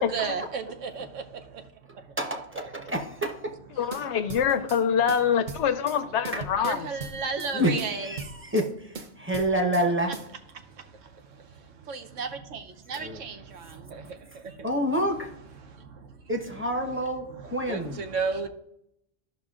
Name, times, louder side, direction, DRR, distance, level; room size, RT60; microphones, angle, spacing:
voice 1, 0.0-2.2 6.6-8.5 10.5-14.7 15.6-16.3 17.4-18.5, right 5 dB, 90° right, 1.1 m, -35 dB
voice 2, 2.2-3.5 6.3-6.4 7.5-10.1 12.9-13.2 14.6-15.3 16.3-18.0, equal, 10° right, 0.8 m, -28 dB
voice 3, 3.8-6.9, left 7 dB, 75° left, 0.8 m, -25 dB
sound 1, 3.9-4.8 5.1-6.0 6.2-7.5 7.8-8.7 8.9-9.9 10.1-10.3, right 4 dB, 45° right, 0.8 m, -39 dB
14.0 x 5.8 x 2.4 m
omnidirectional pair, 1.2 m